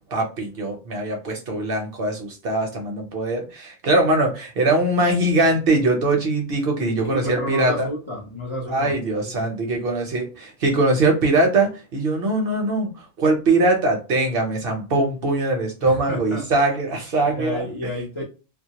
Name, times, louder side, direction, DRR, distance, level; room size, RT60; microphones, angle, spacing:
voice 1, 0.1-7.9 8.7-17.9, right 2 dB, 60° right, 0.7 m, -22 dB
voice 2, 7.1-8.9 9.2-9.3 15.8-16.5 17.3-18.2, equal, 40° left, 0.4 m, -31 dB
2.2 x 2.0 x 2.7 m
omnidirectional pair, 1.2 m